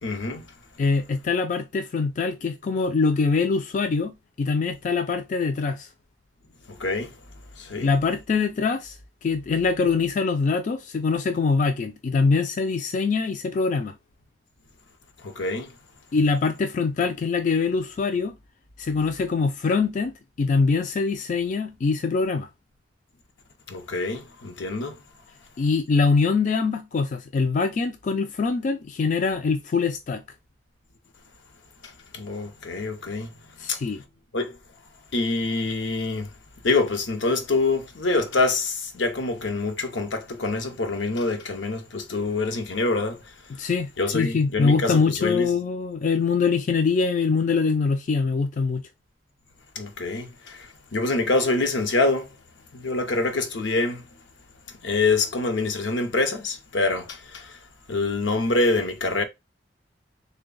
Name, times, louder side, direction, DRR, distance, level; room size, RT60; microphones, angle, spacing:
voice 1, 0.0-0.4 6.7-7.1 7.6-7.9 15.2-15.7 23.7-25.0 31.8-33.3 33.7-33.8 34.3-34.6 35.1-36.3 36.6-43.2 44.0-45.5 49.8-52.3 52.7-54.1 54.8-57.6 57.9-59.2, left 3 dB, 80° left, 0.7 m, -26 dB
voice 2, 0.8-5.9 7.8-9.0 9.2-13.9 16.1-18.3 18.8-20.1 20.4-22.5 25.6-30.2 33.6-34.0 43.6-48.8, left 4 dB, 45° left, 0.3 m, -23 dB
3.3 x 2.2 x 3.8 m
head